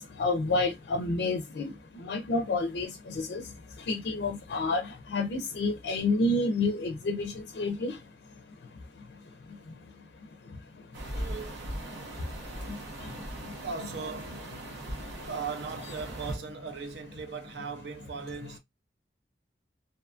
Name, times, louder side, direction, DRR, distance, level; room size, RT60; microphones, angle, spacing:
voice 1, 0.0-1.7 2.0-3.4 3.9-7.9, left 2 dB, 65° left, 0.4 m, -29 dB
sound 1, 10.9-16.4, right 1 dB, 90° right, 0.9 m, -39 dB
voice 2, 11.1-11.7 13.6-14.4 15.3-18.6, right 5 dB, 70° right, 0.5 m, -38 dB
2.6 x 2.3 x 2.4 m
head